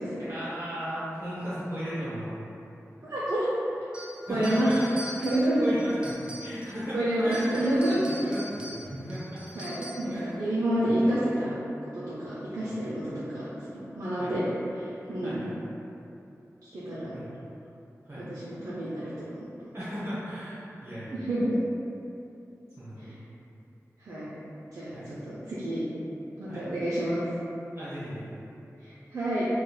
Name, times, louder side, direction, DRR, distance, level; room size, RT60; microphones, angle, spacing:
voice 1, 0.2-2.4 4.3-4.9 5.4-7.0 7.2-7.6 7.9-9.4 10.1-10.4 10.8-10.9 12.6-12.8 14.2-14.3 15.2-15.5 17.1-17.3 18.0-18.2 19.7-21.3 22.8-23.2 24.9-25.1 26.5-26.6 27.7-28.3, equal, 50° right, -12 dB, 0.9 m, -36 dB
voice 2, 3.0-3.5 4.3-4.7 5.2-5.6 6.9-8.0 9.5-11.5 11.9-14.4 14.8-15.4 16.6-17.1 18.3-19.3 21.1-21.5 23.0-23.2 24.0-24.3 24.7-25.8 26.4-27.2 28.8-29.4, right 1 dB, 70° right, -10 dB, 0.5 m, -29 dB
sound 1, 3.9-6.8 7.2-10.2, equal, 15° right, 0.5 m, -43 dB
3.1 x 2.3 x 2.2 m, 2.8 s
wide cardioid pair, 55°, 6 cm